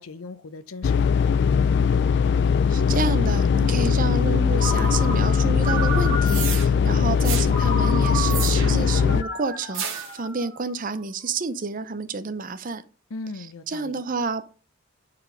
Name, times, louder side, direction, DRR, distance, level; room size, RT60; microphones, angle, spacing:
voice 1, 0.0-1.6 13.1-14.0, left 3 dB, 85° left, 0.7 m, -39 dB
sound 1, 0.8-9.2, left 6 dB, 55° left, 0.3 m, -20 dB
voice 2, 2.7-12.8 13.7-14.4, right 4 dB, 40° right, 0.6 m, -29 dB
Ringtone, 4.6-6.7 7.5-10.8, right 1 dB, 40° left, 3.4 m, -32 dB
sound 2, 6.3-6.7 7.2-7.5 8.3-8.9 9.7-10.2, right 8 dB, 70° right, 1.7 m, -30 dB
9.5 x 4.4 x 5.1 m
head